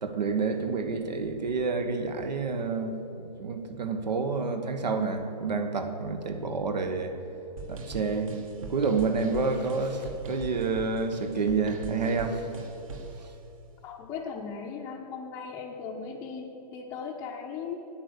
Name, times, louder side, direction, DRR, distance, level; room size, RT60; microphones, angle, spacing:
voice 1, 0.0-2.9 3.2-7.1 7.7-8.3 8.7-12.5, right 4 dB, 85° right, 7 dB, 1.3 m, -29 dB
sound 1, 7.6-13.2, right 4 dB, 55° right, 1.4 m, -41 dB
voice 2, 13.8-17.8, left 5 dB, 15° left, -4 dB, 0.6 m, -38 dB
9.5 x 8.8 x 6.7 m, 2.9 s
hypercardioid pair, 155°, 21 cm